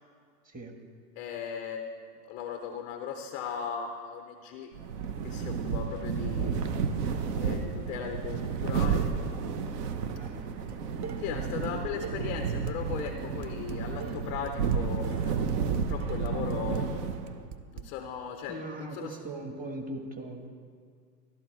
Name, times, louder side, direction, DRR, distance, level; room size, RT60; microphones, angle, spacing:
voice 1, 1.2-4.7 5.2-6.8 7.4-9.1 11.2-15.3 15.7-17.1 17.7-19.2, left 7 dB, 20° left, 6 dB, 0.3 m, -38 dB
sound 1, 4.7-17.5, right 6 dB, 70° right, 1.1 m, -31 dB
voice 2, 10.1-10.5 18.5-20.5, right 1 dB, 15° right, 3 dB, 1.4 m, -39 dB
Dishes pots and pans, 10.7-11.7 12.0-17.8, right 7 dB, 40° right, 0.8 m, -42 dB
14.5 x 12.5 x 4.5 m, 2.1 s
hypercardioid pair, 120°, 49 cm